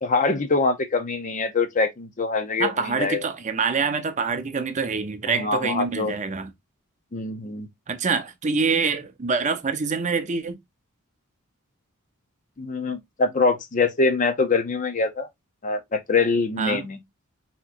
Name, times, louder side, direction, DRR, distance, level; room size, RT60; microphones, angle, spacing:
voice 1, 0.0-3.2 5.3-6.2 7.1-7.7 12.6-15.3 15.6-17.0, left 3 dB, 35° left, 0.6 m, -24 dB
voice 2, 2.6-6.5 7.9-10.6 16.6-16.9, right 5 dB, 35° right, 0.6 m, -25 dB
6.0 x 2.9 x 2.6 m
head